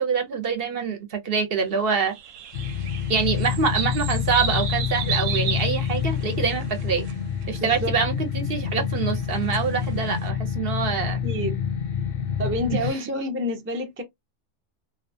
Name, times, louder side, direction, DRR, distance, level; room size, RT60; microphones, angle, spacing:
voice 1, 0.0-2.1 3.1-7.0 7.5-11.2 12.9-13.2, right 5 dB, 60° right, 0.7 m, -25 dB
sound 1, 2.0-7.1 7.4-7.8 9.0-10.3, right 7 dB, 90° right, 1.0 m, -33 dB
sound 2, 2.5-12.9, left 7 dB, 60° left, 0.7 m, -27 dB
voice 2, 7.6-7.9 11.1-11.6 12.4-14.0, left 1 dB, 20° right, 0.3 m, -28 dB
2.7 x 2.3 x 2.6 m
omnidirectional pair, 1.3 m